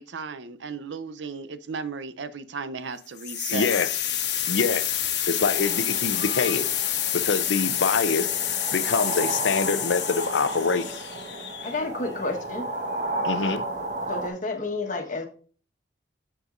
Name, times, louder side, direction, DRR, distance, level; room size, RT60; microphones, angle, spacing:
voice 1, 0.0-3.7, right 5 dB, 75° right, 0.6 m, -35 dB
sound 1, 3.2-12.0, left 10 dB, 65° left, 1.1 m, -28 dB
voice 2, 3.5-3.9 4.5-5.0 5.3-6.7 7.1-8.3 8.7-10.8 13.2-13.6, left 5 dB, 80° left, 0.5 m, -25 dB
sound 2, 5.4-14.3, right 2 dB, 40° right, 1.1 m, -33 dB
voice 3, 11.6-12.7 14.1-15.3, left 2 dB, 45° left, 1.2 m, -30 dB
7.9 x 6.8 x 2.5 m
head